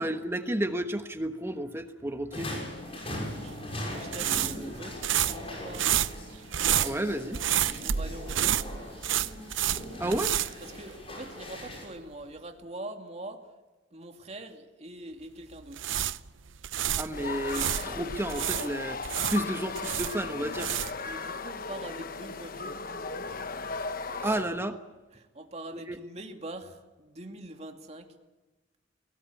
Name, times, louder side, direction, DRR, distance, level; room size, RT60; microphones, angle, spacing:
voice 1, 0.0-2.5 6.8-7.4 10.0-10.3 16.9-19.0 19.3-20.7 24.2-24.8 25.7-26.0, right 1 dB, 15° right, 8 dB, 1.2 m, -31 dB
sound 1, 2.3-11.9, left 1 dB, 30° left, 6.3 m, -40 dB
sound 2, 3.3-11.3 11.6-11.8 15.5-17.9 18.3-21.1, right 11 dB, 80° right, 0.7 m, -30 dB
voice 2, 3.4-6.1 7.8-8.8 10.6-13.5 13.9-15.9 21.0-22.8 25.1-28.1, right 1 dB, 35° right, 4 dB, 2.6 m, -43 dB
sound 3, 17.1-24.4, left 4 dB, 50° left, 1.1 m, -36 dB
23.5 x 19.0 x 8.5 m, 1.2 s
head